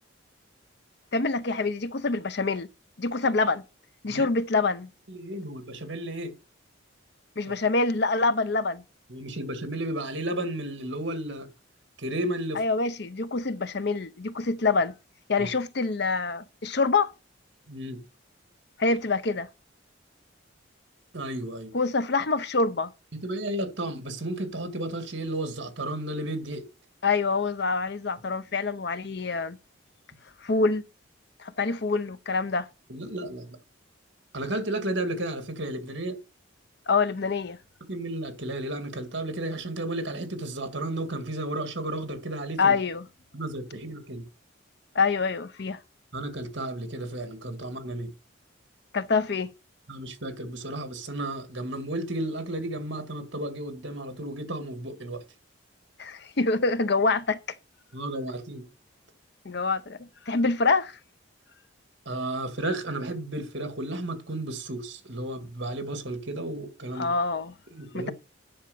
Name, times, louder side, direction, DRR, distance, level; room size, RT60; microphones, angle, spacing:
voice 1, 1.1-2.7 3.0-3.6 4.0-4.9 7.4-8.8 12.5-14.9 15.3-17.1 18.8-19.5 21.7-22.9 27.0-29.6 30.4-30.9 31.4-32.7 36.9-37.6 42.6-43.0 44.9-45.8 48.9-49.5 56.0-57.4 59.4-61.0 66.9-67.5 67.9-68.1, left 4 dB, 55° left, 0.7 m, -26 dB
voice 2, 5.1-6.4 9.1-11.5 12.0-12.6 15.4-15.5 17.7-18.0 21.1-21.7 23.1-26.7 32.9-33.6 34.3-36.2 37.9-42.7 43.3-44.3 46.1-48.1 49.9-55.2 57.9-58.7 62.1-67.1 67.7-68.1, right 1 dB, 60° right, 2.1 m, -33 dB
10.0 x 5.2 x 7.0 m
head